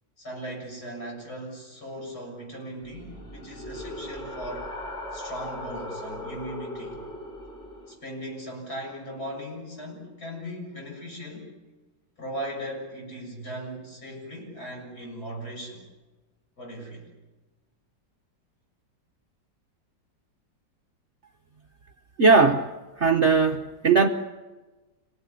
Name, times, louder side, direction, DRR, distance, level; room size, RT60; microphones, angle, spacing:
voice 1, 0.2-4.7 5.1-7.0 7.9-11.5 12.2-15.8 16.6-17.1, equal, 55° left, 0 dB, 7.7 m, -38 dB
sound 1, 2.8-7.9, left 1 dB, ahead, 7.4 m, -38 dB
voice 2, 22.2-22.7 23.0-24.1, right 4 dB, 45° right, 4 dB, 1.1 m, -19 dB
27.5 x 19.0 x 9.9 m, 1.2 s
omnidirectional pair, 2.0 m